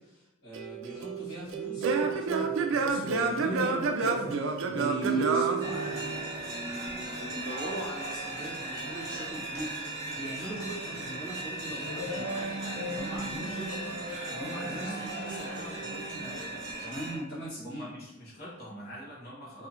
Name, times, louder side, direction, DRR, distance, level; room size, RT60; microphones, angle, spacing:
voice 1, 0.0-17.9, equal, 85° left, -13 dB, 1.4 m, -40 dB
Singing / Plucked string instrument, 0.5-6.4, right 4 dB, 75° right, 0.3 m, -29 dB
sound 1, 5.6-17.2, right 2 dB, 55° right, 1.0 m, -36 dB
voice 2, 17.6-19.7, equal, 50° left, -7 dB, 1.0 m, -44 dB
2.6 x 2.3 x 2.8 m, 0.97 s
head